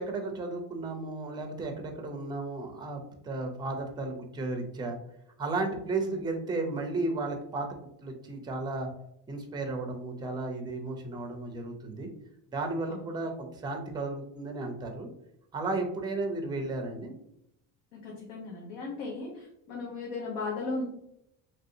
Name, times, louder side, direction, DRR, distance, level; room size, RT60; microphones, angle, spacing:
voice 1, 0.0-5.0 5.4-8.9 9.3-12.1 12.5-15.1 15.5-17.1, right 2 dB, 10° right, 3 dB, 0.4 m, -34 dB
voice 2, 12.9-13.2 17.9-20.9, left 3 dB, 80° left, -3 dB, 0.9 m, -37 dB
3.1 x 2.7 x 2.6 m, 0.77 s
cardioid pair, 115°, 42 cm